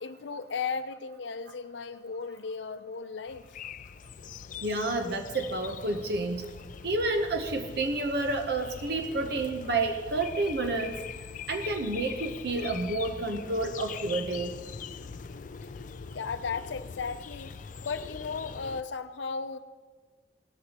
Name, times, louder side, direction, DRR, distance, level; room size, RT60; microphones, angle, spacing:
voice 1, 0.0-3.6 16.1-19.6, left 5 dB, 80° left, 11 dB, 0.6 m, -36 dB
sound 1, 3.3-18.8, left 6 dB, 45° left, 0.4 m, -42 dB
voice 2, 4.6-6.5 6.8-10.9 11.5-14.5, right 2 dB, 60° right, 5 dB, 0.9 m, -30 dB
17.5 x 14.0 x 3.0 m, 1.4 s
head